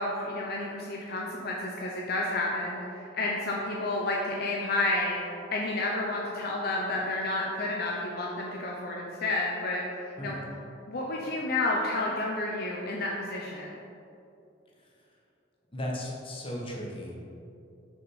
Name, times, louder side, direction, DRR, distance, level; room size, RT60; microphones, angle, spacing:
voice 1, 0.0-10.4 10.9-13.7, left 2 dB, 55° left, -2 dB, 0.8 m, -31 dB
voice 2, 15.7-17.1, left 1 dB, 30° left, -3 dB, 1.3 m, -36 dB
6.5 x 5.4 x 5.5 m, 2.7 s
head